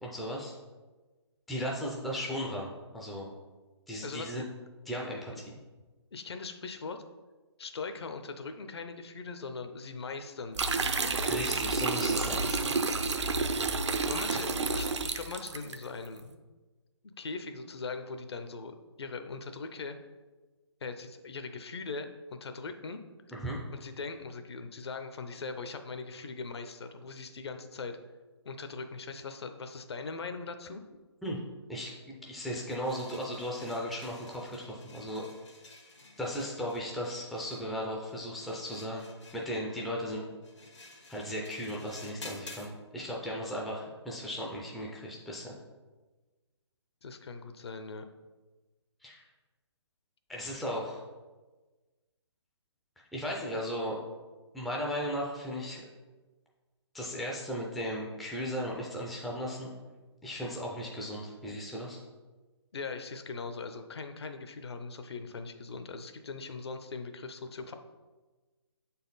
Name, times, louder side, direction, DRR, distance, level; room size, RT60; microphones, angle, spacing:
voice 1, 0.0-0.5 1.5-3.3 3.9-4.5 4.9-5.5 11.2-12.8 14.3-14.4 23.3-23.6 31.2-31.4 31.7-35.2 36.2-39.0 39.3-40.2 41.1-45.5 49.0-49.2 50.3-51.0 53.1-54.0 54.5-55.8 56.9-59.7 60.2-62.0, equal, ahead, -3 dB, 0.3 m, -36 dB
voice 2, 4.0-4.4 5.3-5.4 6.1-7.0 7.6-10.9 14.0-16.4 17.0-20.0 20.8-23.0 23.7-28.0 28.4-30.8 47.0-48.1 62.7-67.7, left 4 dB, 65° left, 7 dB, 0.7 m, -40 dB
sound 1, 10.5-15.8, right 3 dB, 80° right, 0.6 m, -30 dB
sound 2, 32.7-42.7, left 3 dB, 90° left, 1.5 m, -52 dB
6.5 x 4.2 x 3.9 m, 1.3 s
figure-of-eight pair, 150°, 15 cm